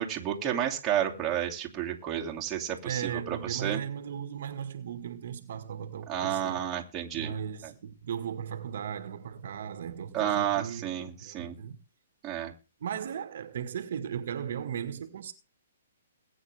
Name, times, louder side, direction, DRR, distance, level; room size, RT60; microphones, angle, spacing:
voice 1, 0.0-3.8 6.1-7.3 10.1-11.5 12.2-12.5, right 10 dB, 15° right, 2.6 m, -31 dB
voice 2, 2.8-6.6 7.1-11.8 12.8-15.3, right 8 dB, 55° right, 1.8 m, -37 dB
20.5 x 9.0 x 3.5 m
hypercardioid pair, 160°, 0 cm